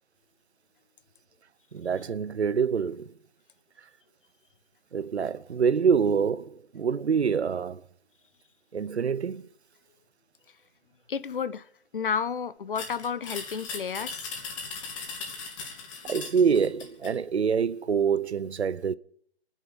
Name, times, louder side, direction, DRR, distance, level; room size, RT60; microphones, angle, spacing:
voice 1, 1.7-3.1 4.9-7.8 8.7-9.5 16.1-19.0, right 6 dB, 75° right, 0.8 m, -26 dB
voice 2, 11.1-14.3, left 6 dB, 50° left, 0.7 m, -32 dB
sound 1, 12.8-17.2, left 5 dB, 30° left, 2.6 m, -38 dB
26.0 x 10.0 x 5.4 m
figure-of-eight pair, 145°, 34 cm